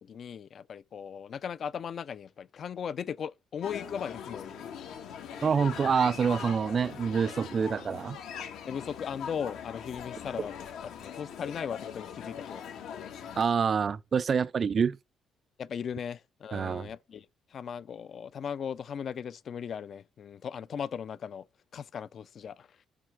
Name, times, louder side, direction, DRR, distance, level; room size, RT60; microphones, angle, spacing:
voice 1, 0.0-4.6 8.7-10.5 11.0-12.6 15.6-21.5 21.7-22.8, left 7 dB, 45° left, 0.4 m, -38 dB
sound 1, 3.6-13.4, left 8 dB, 80° left, 1.7 m, -41 dB
voice 2, 5.4-8.2 13.4-15.0 16.5-16.9, right 6 dB, 35° right, 0.3 m, -26 dB
7.6 x 3.3 x 6.4 m
cardioid pair, 150°, 0 cm